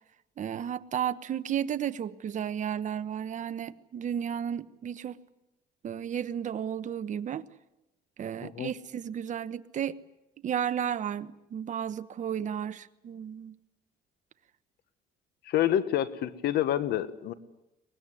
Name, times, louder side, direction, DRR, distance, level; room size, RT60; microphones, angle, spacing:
voice 1, 0.4-5.2 5.8-7.4 8.2-10.0 10.4-13.5, right 9 dB, 45° right, 1.1 m, -33 dB
voice 2, 8.4-8.7 15.4-17.3, left 11 dB, 70° left, 1.4 m, -28 dB
23.5 x 20.0 x 9.9 m
cardioid pair, 110°, 17 cm